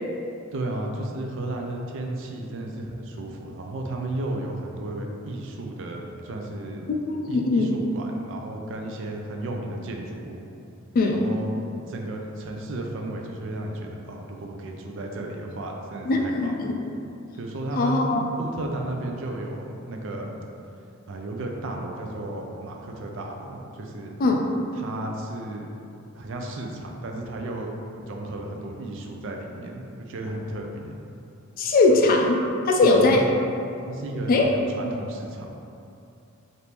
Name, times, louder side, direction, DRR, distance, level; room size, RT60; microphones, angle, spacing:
voice 1, 0.5-6.9 7.3-10.5 11.1-11.5 11.9-16.7 17.3-20.3 21.1-24.2 24.7-25.7 26.1-27.7 28.0-30.9 31.9-32.0 32.8-33.2 33.9-35.5, right 1 dB, 65° right, 2 dB, 0.4 m, -34 dB
voice 2, 7.1-7.8 10.9-11.3 16.1-16.7 17.8-18.2 24.2-24.5 31.6-32.4 32.7-33.2 34.3-34.5, left 3 dB, 45° left, 1 dB, 0.3 m, -20 dB
3.4 x 2.6 x 2.9 m, 2.6 s
head